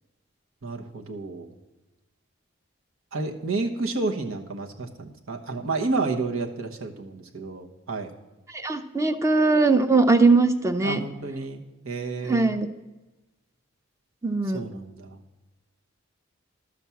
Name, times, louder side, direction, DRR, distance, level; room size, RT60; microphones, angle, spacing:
voice 1, 0.6-1.5 3.1-8.1 10.8-12.6 14.5-15.2, right 3 dB, 85° right, 2 dB, 1.1 m, -30 dB
voice 2, 8.5-11.0 12.2-12.7 14.2-14.6, right 3 dB, 15° right, 9 dB, 0.6 m, -20 dB
12.0 x 6.1 x 7.0 m, 1.1 s
head